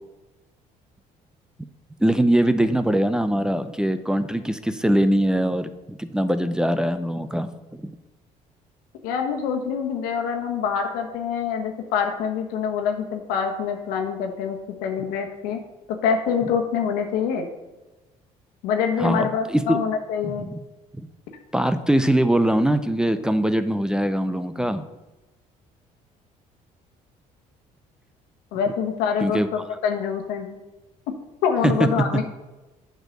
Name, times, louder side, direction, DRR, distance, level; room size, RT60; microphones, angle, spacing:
voice 1, 2.0-7.9 19.0-19.8 20.2-20.6 20.9-21.1 21.5-24.8 29.2-29.5 31.6-32.0, right 1 dB, 5° right, 11 dB, 0.5 m, -22 dB
voice 2, 9.0-15.6 15.9-17.5 18.6-20.5 28.5-30.6 31.4-32.3, left 7 dB, 90° left, 4 dB, 1.3 m, -25 dB
7.7 x 4.5 x 6.4 m, 1.1 s
cardioid pair, 90°, 15 cm